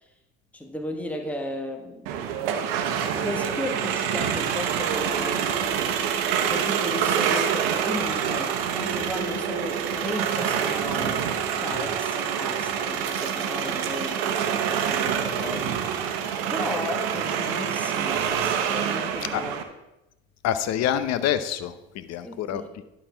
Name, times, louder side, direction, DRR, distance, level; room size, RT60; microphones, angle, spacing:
voice 1, 0.5-2.1 3.2-5.6 6.5-16.2 16.5-19.5 22.2-22.8, left 1 dB, 5° left, 1.3 m, -35 dB
sound 1, 2.1-19.6, right 8 dB, 90° right, 0.9 m, -26 dB
voice 2, 20.4-22.6, left 10 dB, 60° left, 0.8 m, -26 dB
11.5 x 4.2 x 5.7 m
supercardioid pair, 70°, 29 cm